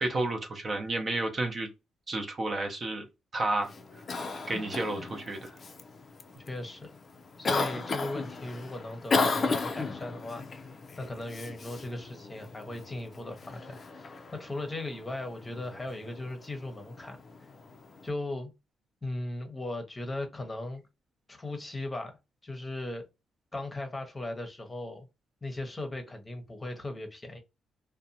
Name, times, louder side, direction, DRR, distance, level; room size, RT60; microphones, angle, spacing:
voice 1, 0.0-1.7 2.1-3.1 3.3-3.7 4.5-5.4, right 2 dB, 35° right, 0.6 m, -31 dB
Cough, 3.6-18.1, left 3 dB, 40° left, 0.4 m, -36 dB
voice 2, 6.5-6.9 7.4-10.4 11.0-17.2 18.0-18.5 19.0-20.8 21.3-22.2 22.4-23.0 23.5-25.1 25.4-27.4, left 2 dB, 20° left, 0.8 m, -37 dB
2.6 x 2.2 x 2.6 m
cardioid pair, 90°, 0 cm